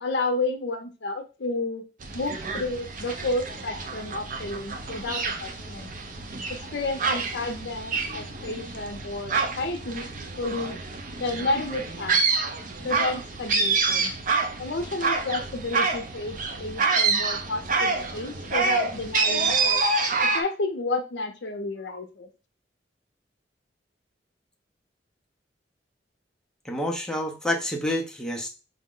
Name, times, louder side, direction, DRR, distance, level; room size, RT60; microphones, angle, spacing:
voice 1, 0.0-1.8 2.1-5.9 6.5-10.0 10.4-10.8 11.2-12.2 12.8-14.1 14.6-19.9 20.3-22.3, left 2 dB, 70° left, 7 dB, 0.6 m, -31 dB
sound 1, 2.0-20.4, right 4 dB, 45° right, 0.5 m, -27 dB
voice 2, 26.6-28.5, left 1 dB, 5° left, 1 dB, 0.5 m, -28 dB
4.8 x 2.1 x 3.7 m, 0.31 s
head